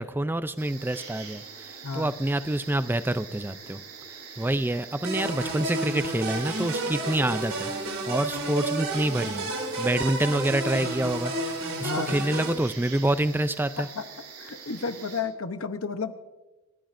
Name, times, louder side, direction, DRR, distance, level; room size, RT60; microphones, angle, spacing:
voice 1, 0.0-3.8 4.4-9.5 9.8-13.9, right 1 dB, 10° right, 13 dB, 0.4 m, -27 dB
sound 1, 0.6-15.2, right 5 dB, 85° right, 6.3 m, -44 dB
sound 2, 5.0-12.5, right 2 dB, 70° right, 3.2 m, -31 dB
voice 2, 11.8-12.2 13.8-14.0 14.4-16.1, left 5 dB, 70° left, 9 dB, 0.8 m, -32 dB
28.5 x 14.5 x 2.6 m, 1.1 s
head